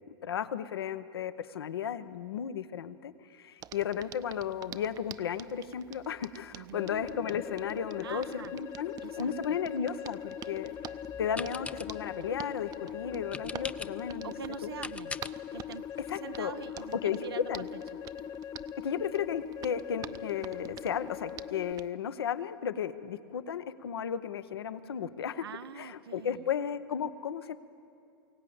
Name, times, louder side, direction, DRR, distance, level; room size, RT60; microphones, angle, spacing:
voice 1, 0.0-10.7 11.2-14.3 14.6-14.7 16.1-16.6 16.9-17.6 18.8-25.5 25.8-27.6, left 8 dB, 80° left, 13 dB, 0.9 m, -34 dB
Hands, 3.6-21.9, right 10 dB, 30° right, 0.6 m, -49 dB
voice 2, 6.5-6.9 8.0-8.5 9.0-9.6 14.2-15.2 15.5-15.9 16.2-17.7 25.4-26.4, right 8 dB, 85° right, 10 dB, 0.6 m, -44 dB
sound 1, 6.7-21.7, left 9 dB, 35° left, 0.8 m, -41 dB
sound 2, 10.5-16.1, left 3 dB, 10° left, 0.5 m, -45 dB
23.0 x 17.0 x 8.7 m, 2.6 s
hypercardioid pair, 100°, 13 cm